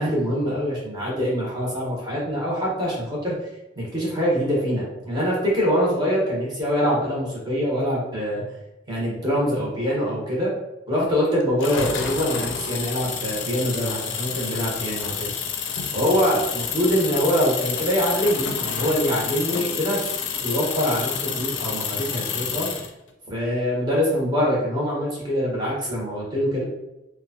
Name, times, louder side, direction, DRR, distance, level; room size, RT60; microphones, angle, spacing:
voice 1, 0.0-3.3 3.8-8.4 8.9-10.5 10.9-15.3 15.9-20.1 20.4-22.7 23.3-26.6, equal, 25° right, -5 dB, 1.0 m, -24 dB
sound 1, 11.6-22.9, left 7 dB, 85° left, 0.4 m, -29 dB
2.9 x 2.2 x 2.7 m, 0.97 s
head